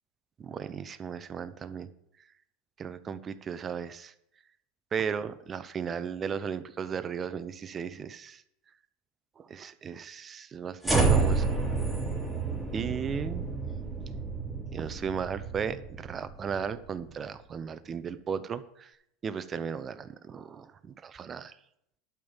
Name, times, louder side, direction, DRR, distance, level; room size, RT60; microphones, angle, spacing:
voice 1, 0.4-1.9 2.8-4.1 4.9-8.4 9.4-11.5 12.7-13.5 14.7-18.9 19.2-21.5, right 7 dB, 30° right, 13 dB, 0.8 m, -36 dB
sound 1, 10.8-17.1, right 4 dB, ahead, 2.9 m, -29 dB
12.0 x 5.3 x 7.2 m, 0.75 s
supercardioid pair, 110°, 0 cm